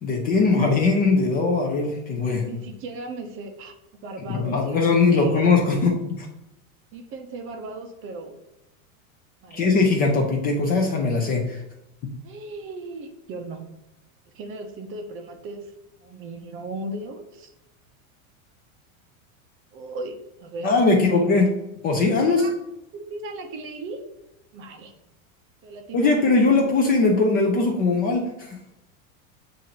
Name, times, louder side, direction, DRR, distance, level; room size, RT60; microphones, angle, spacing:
voice 1, 0.0-2.5 4.2-6.3 9.5-11.6 12.0-12.1 20.6-21.5 21.8-22.5 25.9-28.6, left 3 dB, 25° left, 1 dB, 0.4 m, -20 dB
voice 2, 2.4-3.7 4.0-5.6 6.9-8.4 9.4-9.6 12.2-13.7 14.3-15.7 16.0-17.5 19.7-20.2 20.4-21.1 22.2-22.5 22.9-24.0 24.5-24.9 25.6-26.4, right 2 dB, 30° right, 5 dB, 0.5 m, -36 dB
7.4 x 2.5 x 2.8 m, 0.89 s
supercardioid pair, 145°, 41 cm